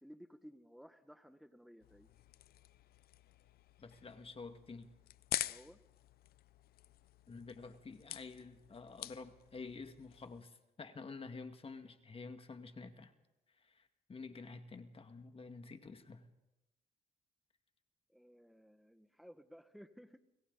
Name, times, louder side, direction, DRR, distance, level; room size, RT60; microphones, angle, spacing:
voice 1, 0.0-2.1 5.5-5.8 11.6-11.7 18.1-20.2, equal, ahead, 9 dB, 1.7 m, -57 dB
sound 1, 1.8-10.4, left 13 dB, 70° left, 0.7 m, -47 dB
voice 2, 3.8-4.9 7.3-13.1 13.6-16.3, left 4 dB, 35° left, 7 dB, 2.1 m, -50 dB
29.0 x 26.5 x 4.1 m, 0.97 s
supercardioid pair, 70°, 16 cm